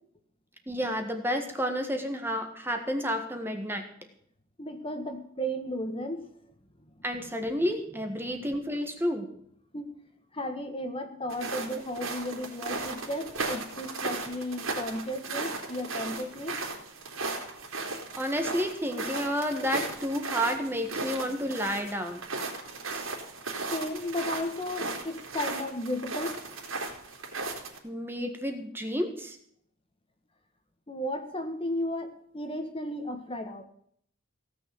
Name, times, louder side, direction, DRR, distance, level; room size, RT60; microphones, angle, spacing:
voice 1, 0.7-3.8 7.0-9.3 18.2-22.2 22.9-23.1 27.8-29.4, equal, 10° right, 5 dB, 1.6 m, -30 dB
voice 2, 4.6-6.3 6.8-7.1 9.7-9.9 10.3-16.6 23.7-26.4 30.9-33.6, left 1 dB, 25° left, 6 dB, 1.6 m, -34 dB
sound 1, 11.3-27.8, right 3 dB, 80° right, 3.6 m, -36 dB
17.0 x 6.9 x 8.4 m, 0.64 s
head